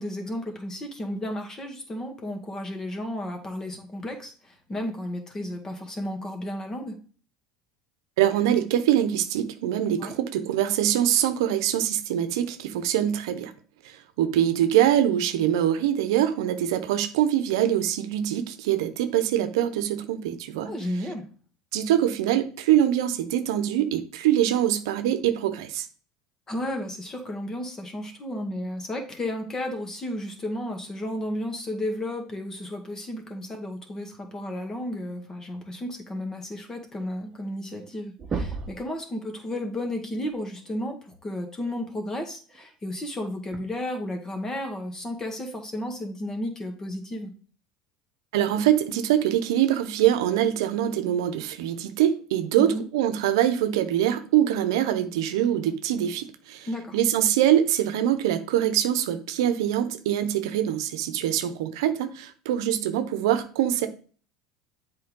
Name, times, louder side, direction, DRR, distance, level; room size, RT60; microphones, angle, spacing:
voice 1, 0.0-7.0 10.0-10.1 20.7-21.3 26.5-47.3 52.6-52.9 56.7-57.0, left 1 dB, 25° left, 4 dB, 1.9 m, -33 dB
voice 2, 8.2-13.5 13.8-20.7 21.7-25.9 48.3-56.7 56.9-63.9, right 11 dB, 80° right, 9 dB, 0.8 m, -24 dB
sound 1, 37.3-37.4 37.7-37.9 38.2-38.9 40.6-40.7 42.5-42.6 43.5-43.6, right 4 dB, 30° right, 1.0 m, -32 dB
7.8 x 4.5 x 3.8 m, 0.41 s
supercardioid pair, 100°, 2 cm